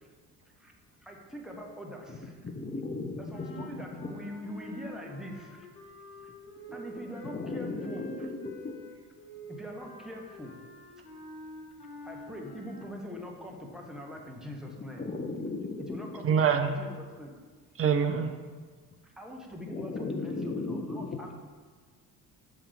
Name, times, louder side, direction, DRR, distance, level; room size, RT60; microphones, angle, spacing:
voice 1, 1.0-2.3 3.2-5.7 6.7-8.3 9.5-10.5 12.0-15.0 15.9-17.4 19.2-21.3, equal, ahead, -1 dB, 1.3 m, -43 dB
voice 2, 2.1-4.2 6.7-6.8 7.2-8.8 14.6-16.1 19.7-21.2, left 3 dB, 20° left, 4 dB, 0.9 m, -36 dB
sound 1, 3.3-13.0, equal, 70° left, 1.4 m, -47 dB
voice 3, 16.2-16.8 17.8-18.3, right 7 dB, 30° right, 7 dB, 0.6 m, -25 dB
8.2 x 5.7 x 3.6 m, 1.5 s
figure-of-eight pair, 50°, 47 cm